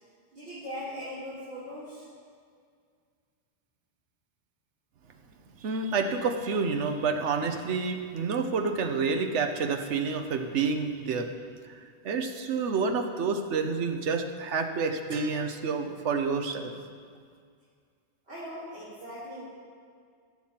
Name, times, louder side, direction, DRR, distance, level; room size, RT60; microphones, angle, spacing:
voice 1, 0.3-2.1 18.3-19.4, equal, 65° right, -13 dB, 3.7 m, -39 dB
voice 2, 5.6-11.3 11.7-16.7, right 4 dB, 80° right, 5 dB, 1.2 m, -29 dB
18.5 x 7.5 x 4.4 m, 2.1 s
omnidirectional pair, 1.2 m